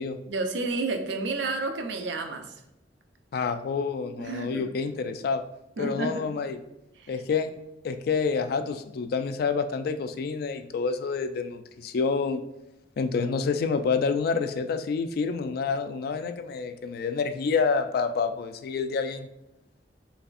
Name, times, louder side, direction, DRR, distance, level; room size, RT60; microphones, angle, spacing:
voice 1, 0.3-2.5 4.2-4.7 5.8-6.2 7.0-7.1, right 3 dB, 80° right, 5 dB, 0.5 m, -30 dB
voice 2, 3.3-5.4 5.8-6.6 7.1-7.5 7.8-12.4 13.0-19.3, left 5 dB, 60° left, 9 dB, 0.3 m, -28 dB
4.0 x 3.3 x 2.4 m, 0.88 s
head